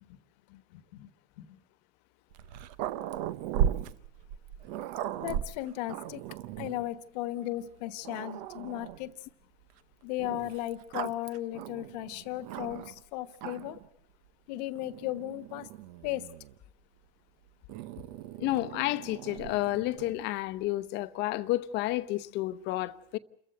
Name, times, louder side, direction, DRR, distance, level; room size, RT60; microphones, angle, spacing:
voice 1, 0.5-1.1 1.4-1.6 5.2-6.2 6.6-9.1 10.0-13.8 14.5-15.7 16.0-16.3, left 15 dB, 75° left, 1.3 m, -36 dB
Growling, 2.3-6.9 7.6-7.7 8.0-9.1 10.2-13.0 13.3-13.9 14.8-16.6 17.7-20.2, right 10 dB, 70° right, 0.9 m, -37 dB
voice 2, 18.4-23.2, left 17 dB, 55° left, 0.8 m, -31 dB
28.5 x 14.5 x 7.9 m
supercardioid pair, 120°, 21 cm